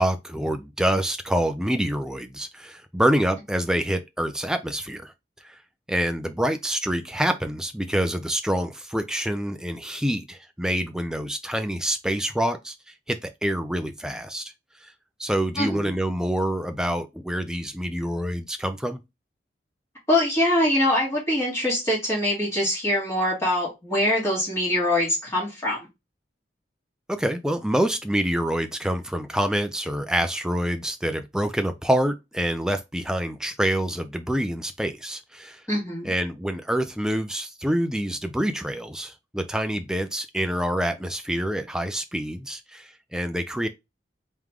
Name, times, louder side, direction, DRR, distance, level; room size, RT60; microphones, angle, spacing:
voice 1, 0.0-5.1 5.4-5.6 5.9-12.7 13.1-14.5 14.8-14.9 15.2-19.0 27.1-35.6 36.0-43.7, right 1 dB, 5° right, 0.4 m, -26 dB
voice 2, 15.6-15.9 20.1-25.8 35.7-36.1, left 1 dB, 15° left, 1.9 m, -23 dB
3.6 x 3.2 x 3.5 m
head